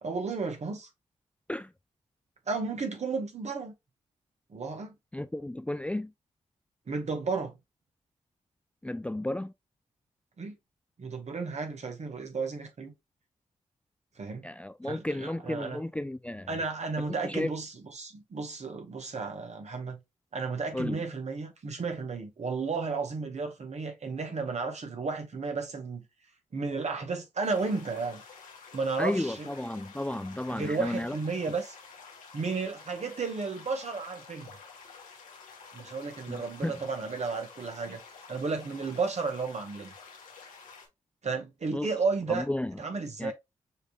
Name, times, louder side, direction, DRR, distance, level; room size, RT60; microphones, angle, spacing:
voice 1, 0.0-0.9 2.5-3.7 4.5-4.9 6.9-7.5 10.4-10.6 11.0-12.9 14.2-14.5 14.9-15.8 16.5-20.0 20.3-26.0 26.5-28.2 28.7-29.5 30.5-31.8 32.3-34.5 35.7-38.0 38.3-39.9 41.2-42.5 42.8-43.3, right 4 dB, 60° right, 1.7 m, -33 dB
voice 2, 5.1-6.1 8.8-9.5 14.4-16.6 17.0-17.5 20.7-21.0 29.0-31.2 36.3-36.8 41.7-41.9 42.3-42.8 43.2-43.3, left 1 dB, 10° left, 0.4 m, -33 dB
sound 1, 27.4-40.9, left 5 dB, 90° left, 1.3 m, -50 dB
6.4 x 3.1 x 2.3 m
supercardioid pair, 40°, 13 cm